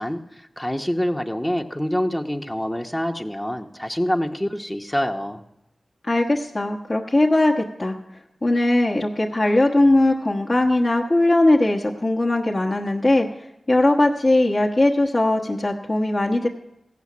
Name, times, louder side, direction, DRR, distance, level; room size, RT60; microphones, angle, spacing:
voice 1, 0.0-5.4, equal, 15° left, 3 dB, 0.9 m, -26 dB
voice 2, 6.0-7.9 8.4-13.3 13.7-16.5, left 1 dB, 40° left, -1 dB, 1.1 m, -19 dB
15.5 x 5.8 x 8.4 m, 0.89 s
cardioid pair, 45°, 0 cm